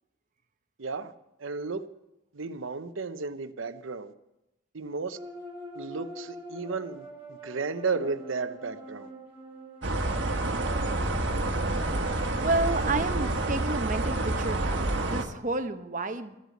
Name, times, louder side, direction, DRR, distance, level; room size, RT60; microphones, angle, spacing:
voice 1, 0.8-1.1 1.4-1.8 2.3-4.1 4.7-5.2 5.7-9.1, right 4 dB, 80° right, 0.8 m, -33 dB
sound 1, 5.1-11.6, right 1 dB, 10° right, 3.1 m, -45 dB
sound 2, 9.8-15.2, right 2 dB, 65° right, 1.4 m, -28 dB
voice 2, 12.4-16.4, right 2 dB, 40° right, 0.9 m, -30 dB
14.0 x 8.2 x 7.8 m
head